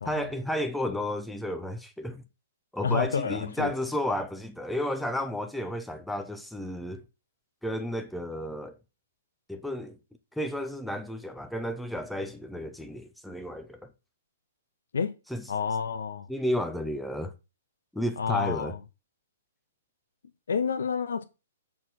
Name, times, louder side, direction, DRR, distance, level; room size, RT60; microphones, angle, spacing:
voice 1, 0.0-2.2 2.7-7.0 7.6-8.8 9.5-10.0 10.3-13.9 15.3-15.4 16.3-17.3 17.9-18.8, left 1 dB, ahead, 0.8 m, -32 dB
voice 2, 2.8-3.7 14.9-15.2 15.5-16.3 18.2-18.8 20.5-21.2, left 6 dB, 60° left, 0.8 m, -29 dB
7.2 x 4.2 x 6.3 m
figure-of-eight pair, 120°, 0 cm